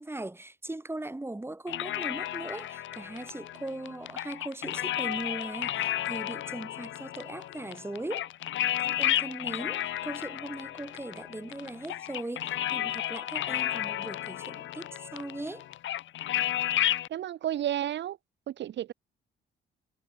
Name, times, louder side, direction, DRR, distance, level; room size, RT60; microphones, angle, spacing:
voice 1, 0.0-8.3 8.8-15.7, right 2 dB, 10° right, 7.2 m, -39 dB
sound 1, 1.7-17.1, left 13 dB, 75° left, 1.7 m, -32 dB
voice 2, 17.1-18.2 18.5-18.9, right 12 dB, 65° right, 0.9 m, -32 dB
cardioid pair, 90°, 20 cm